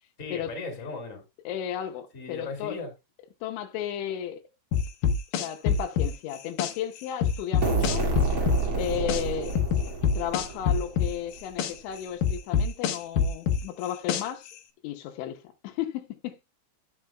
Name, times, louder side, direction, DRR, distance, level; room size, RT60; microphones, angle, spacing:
voice 1, 0.2-1.2 2.1-2.9, left 4 dB, 20° left, 2.5 m, -37 dB
voice 2, 1.5-2.8 3.4-4.4 5.3-8.1 8.8-9.6 10.1-14.5 14.8-16.4, left 10 dB, 90° left, 3.4 m, -34 dB
sound 1, 4.7-6.7 7.2-9.2 9.6-11.7 12.2-14.5, left 6 dB, 70° left, 2.2 m, -25 dB
sound 2, 7.6-11.3, right 3 dB, 40° right, 2.5 m, -29 dB
17.5 x 6.1 x 2.2 m
omnidirectional pair, 5.2 m